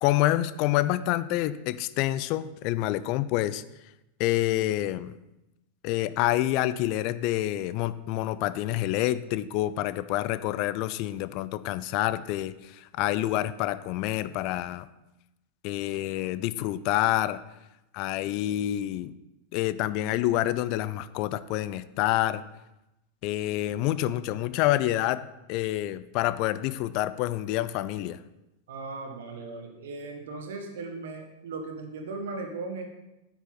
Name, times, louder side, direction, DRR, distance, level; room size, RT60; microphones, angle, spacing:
voice 1, 0.0-3.6 4.2-5.1 5.8-14.9 15.6-17.4 17.9-19.1 19.5-22.4 23.2-25.2 25.5-28.2, left 14 dB, 45° left, 15 dB, 0.4 m, -27 dB
voice 2, 28.7-32.9, right 3 dB, 60° right, 4 dB, 1.6 m, -37 dB
9.0 x 8.9 x 4.0 m, 0.93 s
figure-of-eight pair, 90°, 0 cm